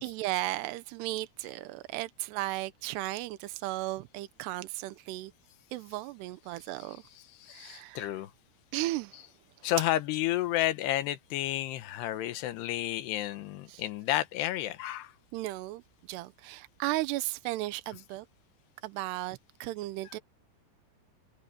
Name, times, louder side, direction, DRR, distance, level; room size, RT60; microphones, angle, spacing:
voice 1, 0.0-5.3 5.7-7.0 7.5-8.1 8.7-9.3 13.7-13.8 15.3-15.8 16.1-18.3 18.8-20.2, right 18 dB, 85° right, 2.9 m, -35 dB
voice 2, 6.8-8.3 9.6-15.1 20.1-20.2, left 14 dB, 85° left, 3.1 m, -31 dB
omnidirectional pair, 4.7 m